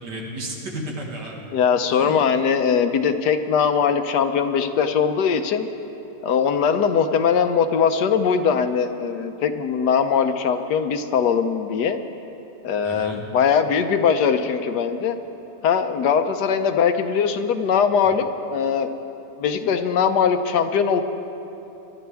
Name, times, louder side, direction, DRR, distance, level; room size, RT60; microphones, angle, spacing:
voice 1, 0.0-1.5 1.9-2.1 12.8-13.3, right 1 dB, 75° right, -1 dB, 2.4 m, -33 dB
voice 2, 1.5-5.7 6.2-12.0 12.6-15.2 15.6-18.9 19.4-21.0, left 6 dB, 75° left, 8 dB, 1.3 m, -21 dB
23.0 x 12.0 x 3.5 m, 3.0 s
omnidirectional pair, 1.8 m